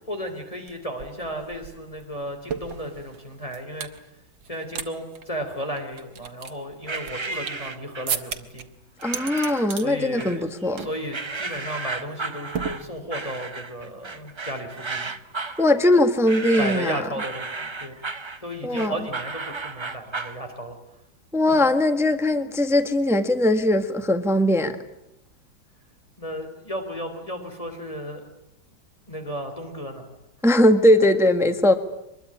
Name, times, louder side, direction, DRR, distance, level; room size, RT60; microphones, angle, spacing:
voice 1, 0.1-3.9 4.4-8.7 9.8-10.4 10.8-15.1 16.5-18.0 18.4-20.8 21.5-21.6 26.2-28.2 29.1-30.0, equal, 15° left, 3.5 m, -34 dB
sound 1, 0.7-0.8 1.0-4.0 4.4-4.9 5.1-5.2 5.8-7.7 8.1-8.6 9.0-9.9 10.2-10.5 10.8-11.0 11.3-11.6 12.5-13.3, right 7 dB, 80° right, 2.3 m, -34 dB
sound 2, 6.9-8.2 9.0-9.8 10.2-10.8 11.1-20.4, right 3 dB, 35° right, 0.4 m, -34 dB
voice 2, 9.0-10.9 15.6-17.0 18.6-18.9 21.3-24.8 30.4-31.7, left 1 dB, ahead, 1.3 m, -20 dB
24.5 x 22.0 x 9.9 m
omnidirectional pair, 2.1 m